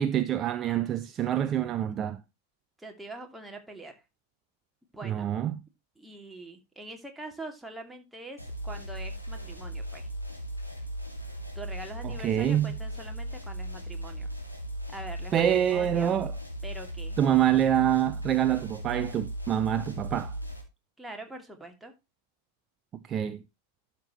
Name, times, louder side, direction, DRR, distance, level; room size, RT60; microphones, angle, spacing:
voice 1, 0.0-2.2 5.0-5.6 12.0-12.7 15.3-16.3 17.2-20.3 23.1-23.4, right 10 dB, 30° right, 0.6 m, -26 dB
voice 2, 2.8-3.9 4.9-5.3 6.0-10.1 11.6-14.3 14.9-16.2 16.6-17.2 21.0-21.9, right 2 dB, 5° right, 2.4 m, -44 dB
sound 1, 8.4-20.6, right 1 dB, 90° left, 2.4 m, -37 dB
12.0 x 6.8 x 2.9 m
figure-of-eight pair, 90°, 0 cm